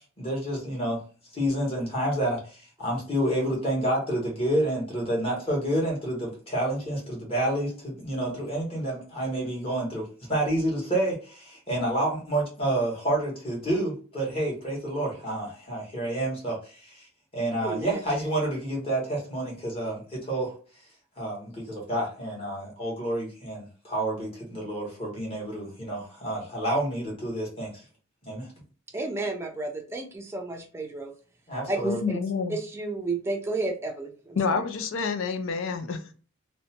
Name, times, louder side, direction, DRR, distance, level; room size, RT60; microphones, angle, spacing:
voice 1, 0.2-1.0 1.3-2.4 2.8-17.0 17.3-20.5 21.2-27.7 28.3-28.5 31.5-32.0, right 1 dB, 30° left, -3 dB, 1.2 m, -29 dB
voice 2, 17.6-18.0 28.9-31.1 31.7-32.2 32.5-34.6, right 2 dB, 10° right, 2 dB, 0.4 m, -32 dB
voice 3, 31.8-32.6 34.4-36.1, left 5 dB, 75° left, 8 dB, 0.4 m, -28 dB
2.6 x 2.1 x 2.8 m, 0.39 s
head